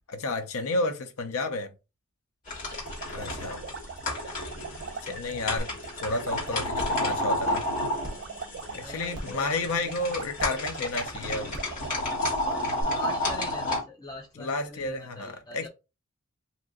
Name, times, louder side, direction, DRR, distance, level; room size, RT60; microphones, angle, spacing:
voice 1, 0.1-1.7 3.1-3.6 5.0-5.7 6.0-7.6 8.7-11.6 14.4-15.7, left 2 dB, 70° left, 0.6 m, -31 dB
sound 1, 2.5-13.8, left 1 dB, 40° left, 1.6 m, -31 dB
voice 2, 2.5-2.9 8.6-10.0 12.8-15.7, left 1 dB, 20° left, 0.5 m, -43 dB
sound 2, 2.6-12.6, right 6 dB, 50° right, 0.3 m, -42 dB
sound 3, 5.6-5.7 6.1-6.2 6.8-7.0 8.0-8.1 9.1-9.4 10.4-10.5 11.5-11.7 12.8-12.9, equal, 15° right, 0.8 m, -36 dB
2.9 x 2.5 x 3.7 m
head